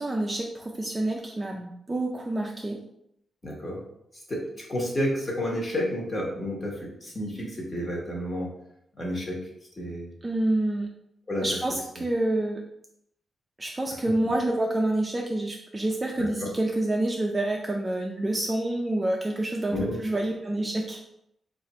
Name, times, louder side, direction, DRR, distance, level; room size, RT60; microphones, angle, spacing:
voice 1, 0.0-2.8 10.2-10.9 11.4-11.7 12.0-12.6 13.6-21.0, right 1 dB, 20° right, 0 dB, 0.4 m, -27 dB
voice 2, 3.4-3.8 4.3-8.5 9.0-9.4 9.8-10.1 11.3-11.5 12.0-12.1 16.4-16.5 19.7-20.0, equal, 25° left, -2 dB, 1.0 m, -30 dB
3.2 x 2.4 x 4.1 m, 0.76 s
wide cardioid pair, 150°, 0 cm